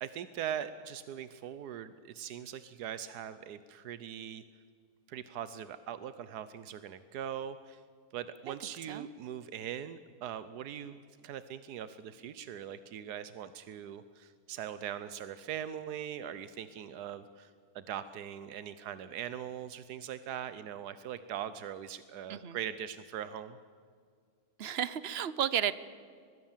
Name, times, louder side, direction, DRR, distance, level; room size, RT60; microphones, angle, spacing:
voice 1, 0.0-4.4 5.1-7.8 8.1-23.6, right 9 dB, 90° right, 13 dB, 1.3 m, -41 dB
voice 2, 24.6-25.8, right 9 dB, 50° right, 16 dB, 0.9 m, -33 dB
23.5 x 20.5 x 7.3 m, 2.1 s
omnidirectional pair, 1.6 m